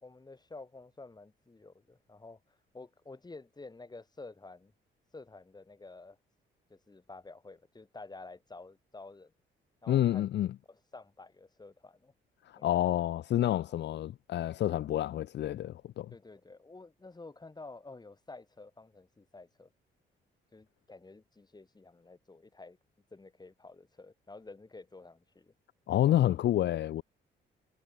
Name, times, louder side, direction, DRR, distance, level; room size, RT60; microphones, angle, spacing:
voice 1, 0.0-4.7 5.1-6.2 6.7-9.3 9.8-10.3 10.7-12.1 12.6-12.9 16.1-19.7 20.5-22.8 23.1-25.5, left 3 dB, 20° left, 4.1 m, -50 dB
voice 2, 9.9-10.5 12.5-16.1 25.9-27.0, left 12 dB, 60° left, 0.6 m, -28 dB
cardioid pair, 90°, 20 cm